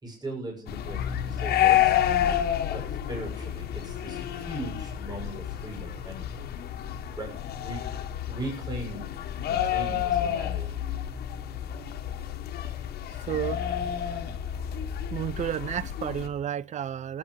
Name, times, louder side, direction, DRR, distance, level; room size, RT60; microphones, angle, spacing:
voice 1, 0.0-2.0 2.7-6.3 7.2-7.8 8.3-9.1 9.5-10.8, right 1 dB, 25° right, 6.6 m, -39 dB
sound 1, 0.7-16.3, left 10 dB, 70° left, 1.7 m, -29 dB
voice 2, 13.3-13.6 15.1-17.2, right 10 dB, 45° right, 0.6 m, -31 dB
18.0 x 9.8 x 4.7 m
cardioid pair, 110°, 17 cm